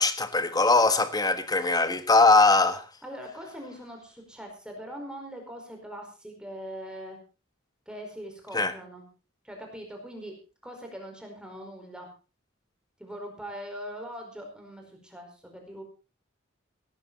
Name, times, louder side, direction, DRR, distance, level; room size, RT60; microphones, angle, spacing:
voice 1, 0.0-2.9 8.5-8.7, left 3 dB, 20° left, 1.5 m, -21 dB
voice 2, 3.0-7.2 7.9-9.1 9.4-10.3 10.6-12.1 13.0-15.8, equal, 5° right, 4.9 m, -41 dB
17.5 x 13.5 x 4.2 m
head